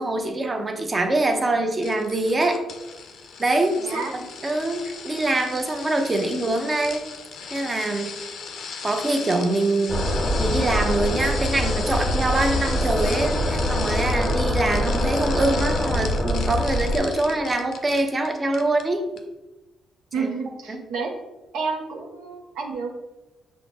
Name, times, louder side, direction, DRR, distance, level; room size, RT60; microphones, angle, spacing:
voice 1, 0.0-2.6 3.4-4.0 4.4-7.0 7.5-8.1 8.8-19.0 20.2-20.3 20.7-20.8, right 2 dB, 25° right, 5 dB, 0.6 m, -24 dB
sound 1, 1.8-18.3 18.5-18.8 19.2-19.3, left 5 dB, 70° left, 0.5 m, -36 dB
voice 2, 3.8-4.2 20.1-21.1 21.5-22.9, right 4 dB, 85° right, 1 dB, 0.5 m, -30 dB
sound 2, 9.9-17.0, equal, 15° left, 0.6 m, -24 dB
5.9 x 2.0 x 3.4 m, 1.1 s
cardioid pair, 90°, 0 cm